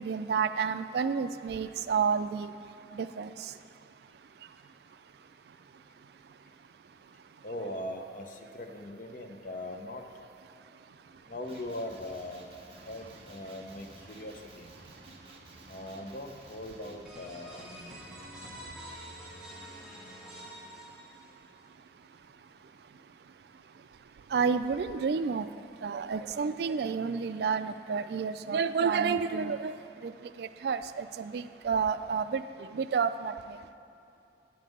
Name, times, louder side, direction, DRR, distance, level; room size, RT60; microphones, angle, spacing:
voice 1, 0.0-2.5 2.9-3.5 24.3-25.5 25.8-29.8 30.0-30.1 30.4-33.6, right 6 dB, 60° right, 0.3 m, -30 dB
voice 2, 7.4-10.0 11.3-12.5 12.9-14.7 15.7-18.0, left 1 dB, 45° left, 0.7 m, -40 dB
Male speech man speaking, 11.4-17.0, right 2 dB, 30° right, 1.0 m, -53 dB
sound 1, 17.0-21.6, equal, 5° right, 1.1 m, -47 dB
9.2 x 5.4 x 7.7 m
head